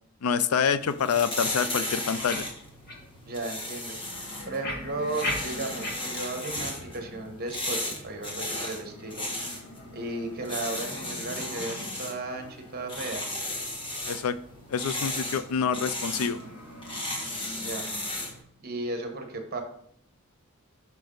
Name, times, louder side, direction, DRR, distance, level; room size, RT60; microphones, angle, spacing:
voice 1, 0.2-2.5 14.1-14.4 14.7-16.4, left 6 dB, 75° left, 14 dB, 0.4 m, -27 dB
sound 1, 0.8-18.4, left 1 dB, 25° left, 1.3 m, -35 dB
sound 2, 2.3-2.4 2.9-3.0 3.5-3.6 4.6-5.9 6.4-6.5 7.0-7.1, left 1 dB, 45° left, 1.4 m, -33 dB
voice 2, 3.3-4.0 4.5-9.3 9.9-13.3 17.6-17.9 18.6-19.6, right 2 dB, 45° right, 4 dB, 1.1 m, -35 dB
sound 3, 3.9-18.4, left 1 dB, 90° left, 1.5 m, -47 dB
5.9 x 5.3 x 3.8 m, 0.67 s
head